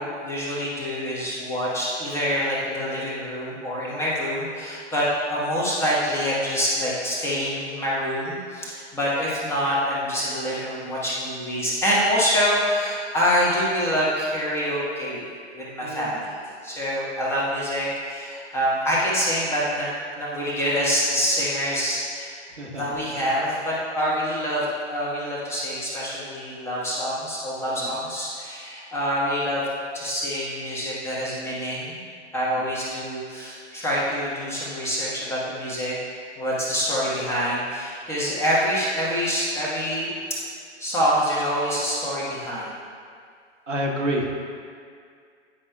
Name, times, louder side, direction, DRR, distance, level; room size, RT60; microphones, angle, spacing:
voice 1, 0.0-15.3 15.5-19.9 20.1-22.3 22.7-29.7 29.9-32.0 32.3-35.9 36.4-40.1 40.8-42.7, equal, 5° left, -7 dB, 1.1 m, -26 dB
voice 2, 43.7-44.4, equal, 80° right, -2 dB, 1.1 m, -27 dB
9.9 x 5.2 x 2.2 m, 2.2 s
figure-of-eight pair, 105°, 36 cm